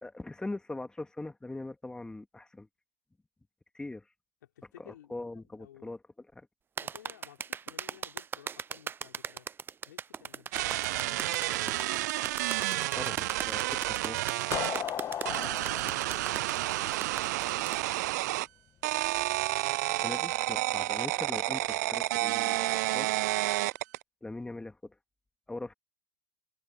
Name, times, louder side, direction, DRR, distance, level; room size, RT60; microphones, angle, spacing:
voice 1, 0.0-2.7 3.7-4.0 4.8-6.0 6.3-6.5 13.0-13.8 14.0-14.2 20.0-23.1 24.2-24.9 25.5-25.7, left 2 dB, 10° left, 2.5 m, -41 dB
voice 2, 4.4-5.9 6.8-9.5 9.9-11.7 15.5-18.1, left 12 dB, 80° left, 6.0 m, -55 dB
sound 1, 6.8-17.8, right 7 dB, 20° right, 0.7 m, -39 dB
sound 2, 10.5-14.8 15.2-18.5 18.8-24.0, right 18 dB, 70° right, 0.3 m, -30 dB
sound 3, 14.5-17.3, left 10 dB, 35° left, 1.4 m, -36 dB
hypercardioid pair, 100°, 10 cm